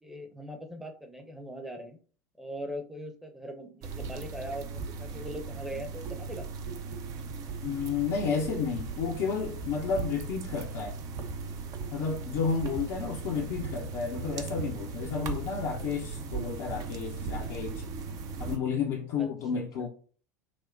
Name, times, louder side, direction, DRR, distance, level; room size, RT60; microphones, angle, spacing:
voice 1, 0.0-2.0 2.4-6.4 13.1-13.5 17.4-17.6 19.2-19.3 19.5-19.9, equal, 5° right, 0.7 m, -41 dB
Slow Pan Frying, 3.8-18.6, right 4 dB, 40° right, 0.6 m, -38 dB
voice 2, 7.6-11.0 11.9-17.8 18.4-19.9, left 6 dB, 50° left, 0.7 m, -31 dB
6.0 x 2.1 x 2.6 m
figure-of-eight pair, 75°, 9 cm